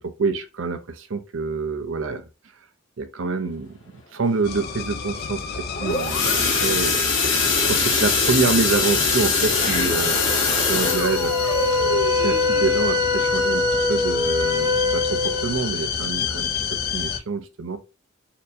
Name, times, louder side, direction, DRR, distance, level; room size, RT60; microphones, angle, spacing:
voice 1, 0.0-2.3 3.0-3.8 4.1-7.3 7.7-10.2 10.7-11.3 12.2-17.8, right 4 dB, 75° right, 0.6 m, -26 dB
sound 1, 4.4-17.2, left 7 dB, 50° left, 0.4 m, -29 dB
sound 2, 5.5-14.2 14.6-14.9 15.2-15.3 15.8-15.9, left 4 dB, 70° left, 1.7 m, -23 dB
Wind instrument woodwind instrument, 10.8-15.5, left 3 dB, 20° right, 0.7 m, -23 dB
4.3 x 2.7 x 2.6 m
head